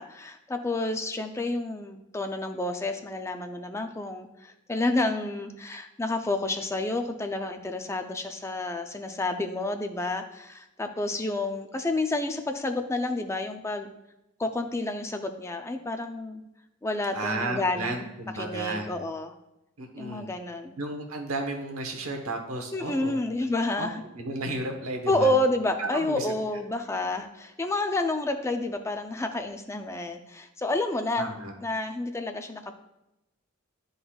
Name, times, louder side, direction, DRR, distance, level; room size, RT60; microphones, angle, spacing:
voice 1, 0.0-13.9 14.4-16.4 16.8-18.1 18.4-19.3 20.0-20.8 22.7-24.0 25.1-31.3 31.6-32.7, left 2 dB, 15° left, 6 dB, 0.4 m, -29 dB
voice 2, 17.1-18.9 19.8-20.3 20.8-23.2 23.8-23.9 24.1-25.3 25.8-26.3 31.2-31.5, right 2 dB, 90° right, 3 dB, 1.1 m, -33 dB
11.5 x 3.9 x 2.3 m, 0.91 s
head